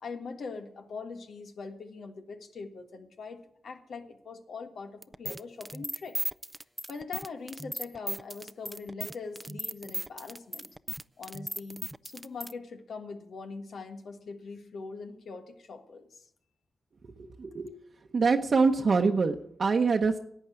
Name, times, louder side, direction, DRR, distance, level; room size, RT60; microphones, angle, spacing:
voice 1, 0.0-6.2 6.9-10.7 11.2-16.3, left 4 dB, 80° left, 6 dB, 1.5 m, -42 dB
sound 1, 5.0-12.5, right 1 dB, 15° right, 0.4 m, -36 dB
voice 2, 17.0-17.7 18.1-20.2, right 4 dB, 55° right, 2 dB, 0.9 m, -25 dB
11.5 x 8.1 x 9.0 m, 0.70 s
cardioid pair, 65°, 0 cm